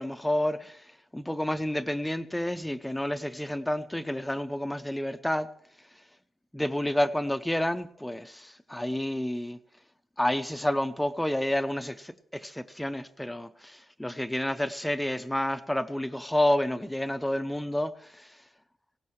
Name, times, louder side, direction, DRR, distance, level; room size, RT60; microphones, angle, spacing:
voice 1, 0.0-5.5 6.5-9.6 10.2-18.4, left 1 dB, 5° left, 0.5 m, -30 dB
19.0 x 17.0 x 3.1 m
wide cardioid pair, 135°, 0 cm